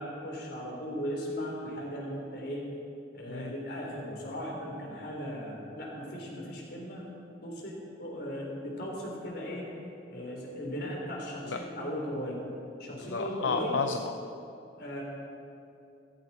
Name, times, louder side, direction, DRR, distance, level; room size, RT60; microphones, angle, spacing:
voice 1, 0.0-2.7 3.1-7.0 7.4-9.7 10.1-12.4 12.8-13.7 14.8-15.0, equal, 60° left, -2 dB, 3.9 m, -37 dB
voice 2, 12.9-14.0, left 5 dB, 80° left, 6 dB, 0.6 m, -32 dB
16.0 x 15.0 x 4.4 m, 2.7 s
head